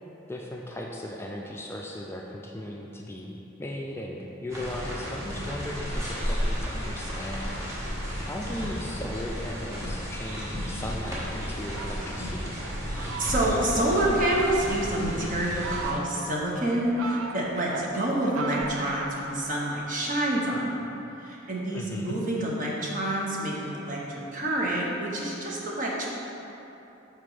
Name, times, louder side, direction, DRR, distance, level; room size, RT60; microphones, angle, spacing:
voice 1, 0.3-7.8 8.2-12.6 21.7-22.2, left 1 dB, 10° left, -1 dB, 0.3 m, -37 dB
sound 1, 4.5-15.9, equal, 15° right, 1.4 m, -33 dB
Fowl, 11.6-13.7 14.2-14.8 15.4-16.3 16.8-19.6, right 4 dB, 80° right, 0.4 m, -38 dB
voice 2, 12.8-20.8 21.2-26.1, right 1 dB, 40° right, -3 dB, 1.1 m, -28 dB
5.9 x 4.4 x 4.9 m, 3.0 s
head